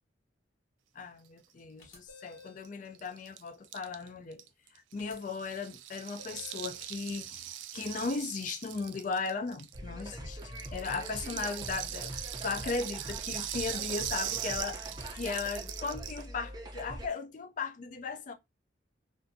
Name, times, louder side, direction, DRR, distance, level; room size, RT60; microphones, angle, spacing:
voice 1, 0.9-4.5 4.7-10.4 10.7-18.3, left 4 dB, 40° left, 0.4 m, -37 dB
sound 1, 1.8-2.7 5.0-5.1 6.2-6.8, left 4 dB, 80° left, 0.9 m, -53 dB
Rattle (instrument), 2.4-2.5 2.6-2.7 2.9-10.1 10.4-16.3, right 12 dB, 80° right, 0.3 m, -40 dB
sound 2, 9.7-17.1, right 1 dB, 20° right, 0.5 m, -43 dB
2.6 x 2.2 x 2.6 m
head